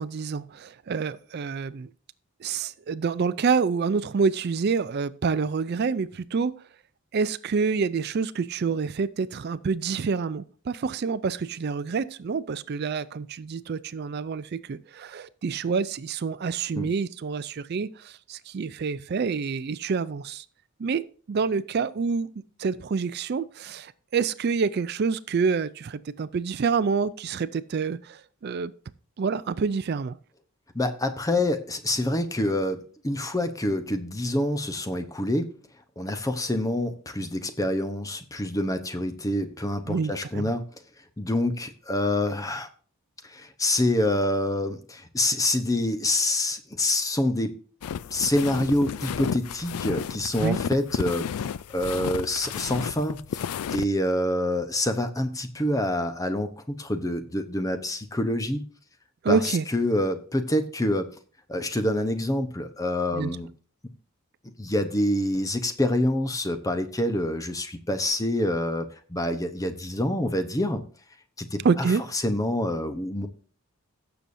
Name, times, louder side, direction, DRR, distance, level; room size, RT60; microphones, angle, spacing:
voice 1, 0.0-1.9 2.4-6.5 7.1-20.4 20.8-22.3 22.6-28.7 29.2-30.2 39.9-40.5 50.4-50.6 59.2-59.6 63.1-63.3 71.6-72.0, right 5 dB, 45° right, 0.4 m, -27 dB
voice 2, 30.7-35.6 36.0-40.6 41.2-42.7 43.2-47.6 48.1-53.4 53.7-58.6 59.3-61.1 61.5-63.5 64.6-70.8 71.4-73.3, left 1 dB, 15° left, 0.8 m, -26 dB
sound 1, 47.8-53.8, left 7 dB, 85° left, 0.4 m, -32 dB
16.0 x 7.0 x 2.6 m
head